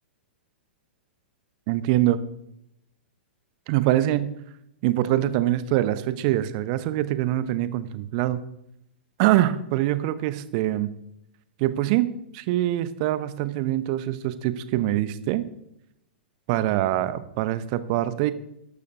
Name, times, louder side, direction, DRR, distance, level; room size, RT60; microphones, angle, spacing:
voice 1, 1.7-2.2 3.7-4.3 4.8-8.4 9.2-10.9 11.6-12.1 12.3-15.4 16.5-18.3, right 14 dB, 40° right, 14 dB, 0.8 m, -24 dB
13.5 x 12.0 x 2.7 m, 0.79 s
figure-of-eight pair, 105°, 6 cm